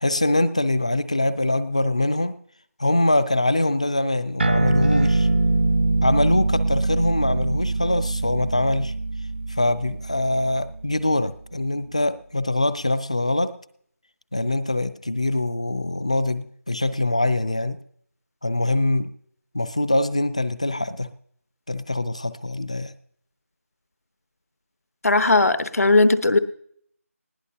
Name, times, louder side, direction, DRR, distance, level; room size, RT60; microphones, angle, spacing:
voice 1, 0.0-2.4 2.8-5.3 6.0-8.9 9.5-13.6 14.3-17.8 18.4-19.1 19.5-21.1 21.7-22.9, left 1 dB, 25° left, 15 dB, 0.4 m, -23 dB
sound 1, 4.4-11.2, right 2 dB, 45° right, 0.6 m, -23 dB
voice 2, 25.0-26.4, left 2 dB, 70° left, 12 dB, 1.1 m, -17 dB
20.0 x 16.0 x 2.8 m, 0.65 s
figure-of-eight pair, 180°, 8 cm